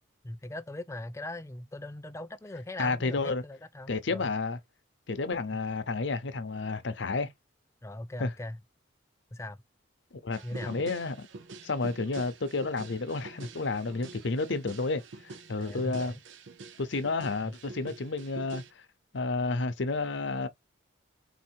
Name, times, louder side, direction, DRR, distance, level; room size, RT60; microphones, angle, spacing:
voice 1, 0.2-4.3 7.8-8.6 9.3-9.6 10.4-10.8 15.6-16.2 17.4-17.5, left 1 dB, 15° left, 0.3 m, -40 dB
voice 2, 2.8-3.4 3.9-4.6 5.1-7.3 8.2-8.3 10.2-10.4 10.7-11.3 11.6-16.2 16.8-18.8 19.1-20.5, left 3 dB, 65° left, 0.7 m, -31 dB
sound 1, 10.3-18.7, right 3 dB, 75° right, 0.6 m, -46 dB
4.0 x 2.8 x 4.5 m
head